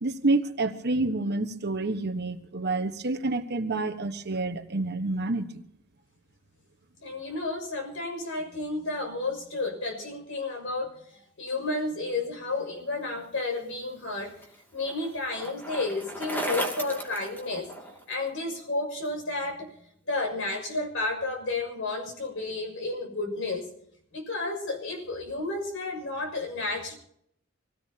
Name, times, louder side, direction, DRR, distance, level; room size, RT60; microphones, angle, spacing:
voice 1, 0.0-5.6, right 2 dB, 55° right, 8 dB, 1.3 m, -28 dB
voice 2, 7.0-14.4 14.7-17.7 18.1-23.7 24.1-27.0, left 2 dB, 65° left, 3 dB, 6.6 m, -32 dB
Bicycle, 13.7-18.1, right 1 dB, 10° left, 2.5 m, -36 dB
25.5 x 17.5 x 2.9 m, 0.72 s
head